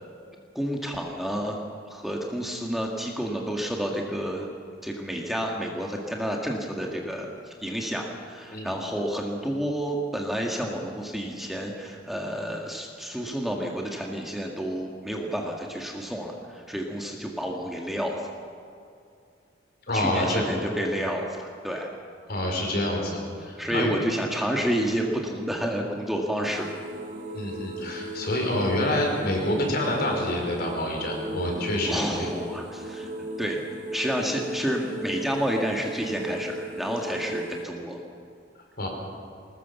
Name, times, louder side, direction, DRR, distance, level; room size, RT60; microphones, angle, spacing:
voice 1, 0.6-1.6 1.9-4.5 4.8-18.3 19.9-21.9 23.6-26.7 31.9-33.1 33.4-33.6 33.9-38.0, equal, ahead, 0 dB, 1.8 m, -30 dB
voice 2, 19.9-20.4 22.3-23.9 27.3-32.3 38.8-38.9, left 1 dB, 55° left, 1 dB, 5.1 m, -27 dB
sound 1, 26.4-37.6, right 1 dB, 40° right, 1.7 m, -36 dB
21.5 x 19.5 x 7.1 m, 2.4 s
head